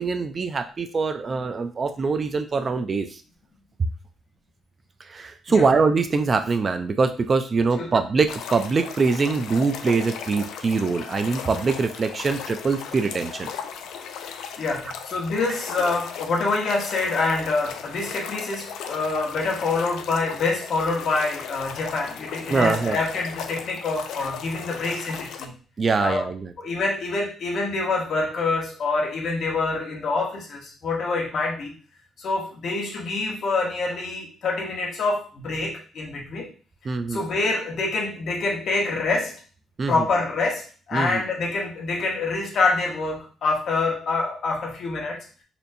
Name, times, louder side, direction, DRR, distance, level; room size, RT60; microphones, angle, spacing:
voice 1, 0.0-3.2 3.8-3.9 5.1-13.5 22.5-23.0 25.8-26.5 36.9-37.2 39.8-40.1 40.9-41.2, right 4 dB, 40° right, 7 dB, 0.4 m, -23 dB
sound 1, 8.3-25.4, left 7 dB, 80° left, 0.4 m, -37 dB
voice 2, 14.6-25.5 26.0-26.3 26.6-31.7 32.2-36.5 37.1-39.4 39.9-45.2, left 3 dB, 60° left, 0 dB, 1.1 m, -26 dB
4.3 x 2.6 x 2.6 m, 0.38 s
cardioid pair, 90°, 0 cm